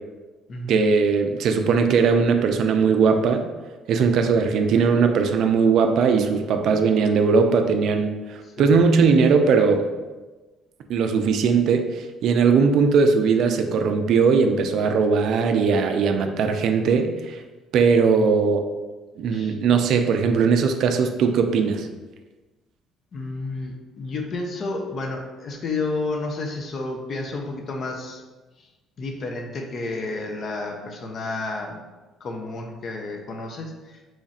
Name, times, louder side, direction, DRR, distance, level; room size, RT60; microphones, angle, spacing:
voice 1, 0.7-3.4 3.9-9.8 10.9-17.4 17.7-18.7 19.2-21.9, right 5 dB, 60° right, 6 dB, 0.3 m, -19 dB
voice 2, 23.1-28.2 29.0-31.8 32.2-33.7, left 3 dB, 45° left, 3 dB, 0.5 m, -31 dB
3.1 x 2.4 x 4.1 m, 1.2 s
cardioid pair, 130°, 0 cm